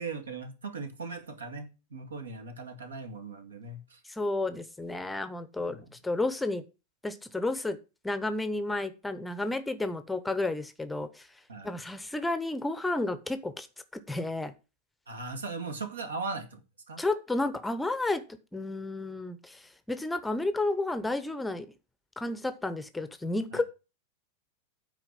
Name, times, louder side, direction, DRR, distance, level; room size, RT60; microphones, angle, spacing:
voice 1, 0.0-4.0 5.7-5.9 11.5-11.7 15.1-17.0 23.5-23.6, right 4 dB, 70° right, 6 dB, 1.9 m, -39 dB
voice 2, 4.1-6.6 7.0-7.8 8.0-11.3 11.6-13.7 14.1-14.5 17.0-18.2 18.5-21.7 22.2-23.6, left 2 dB, 5° left, 12 dB, 0.8 m, -31 dB
9.0 x 4.6 x 7.4 m, 0.30 s
figure-of-eight pair, 90°, 0 cm